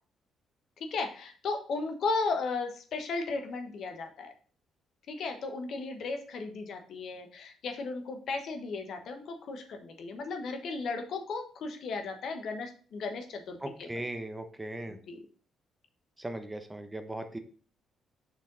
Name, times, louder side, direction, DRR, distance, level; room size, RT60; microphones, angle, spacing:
voice 1, 0.8-4.3 5.1-14.1 14.9-15.2, left 3 dB, 65° left, 5 dB, 1.1 m, -35 dB
voice 2, 13.6-15.0 16.2-17.4, right 1 dB, 15° right, 7 dB, 0.9 m, -38 dB
5.9 x 4.4 x 3.9 m, 0.43 s
supercardioid pair, 55°, 0 cm